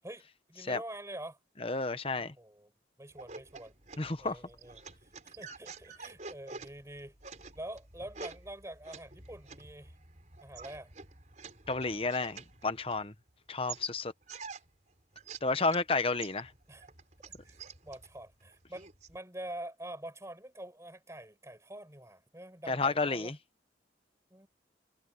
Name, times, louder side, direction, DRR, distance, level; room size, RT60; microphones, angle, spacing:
voice 1, 0.5-1.4 2.2-2.7 3.0-3.7 4.2-4.8 5.2-7.1 7.5-9.9 10.4-10.9 16.7-16.9 17.2-17.5 17.8-23.3 24.3-24.5, right 1 dB, 15° right, 5.0 m, -46 dB
voice 2, 1.6-2.3 4.0-4.4 11.7-13.1 13.5-14.1 15.4-16.5 22.7-23.3, left 3 dB, 30° left, 1.1 m, -31 dB
sound 1, 3.1-13.3 13.7-15.9 16.2-19.2, right 5 dB, 45° right, 4.9 m, -49 dB
head